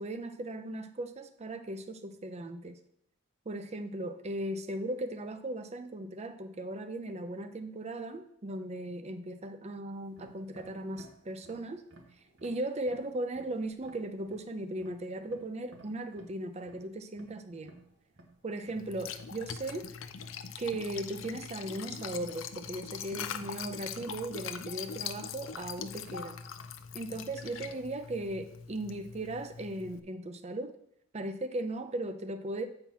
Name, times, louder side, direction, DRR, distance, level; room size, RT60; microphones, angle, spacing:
voice 1, 0.0-2.8 3.5-11.8 12.4-17.8 18.4-19.9 20.6-26.4 26.9-30.7 31.1-32.7, right 1 dB, 35° right, 10 dB, 0.6 m, -37 dB
sound 1, 9.9-28.3, right 2 dB, 65° right, 1.3 m, -59 dB
Liquid, 18.8-30.0, left 7 dB, 80° left, 0.6 m, -42 dB
8.3 x 4.4 x 5.6 m, 0.75 s
head